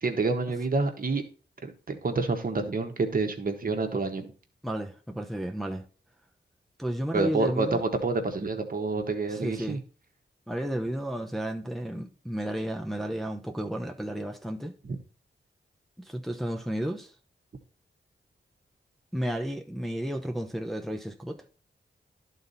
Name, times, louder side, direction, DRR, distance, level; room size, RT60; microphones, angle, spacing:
voice 1, 0.0-1.2 1.6-4.3 7.1-9.8 14.9-15.0, right 3 dB, 45° right, 1.3 m, -28 dB
voice 2, 4.6-5.9 6.8-7.8 9.3-9.8 10.5-14.7 16.0-17.1 19.1-21.5, equal, ahead, 0.8 m, -32 dB
11.0 x 4.1 x 4.1 m
cardioid pair, 60°, 20 cm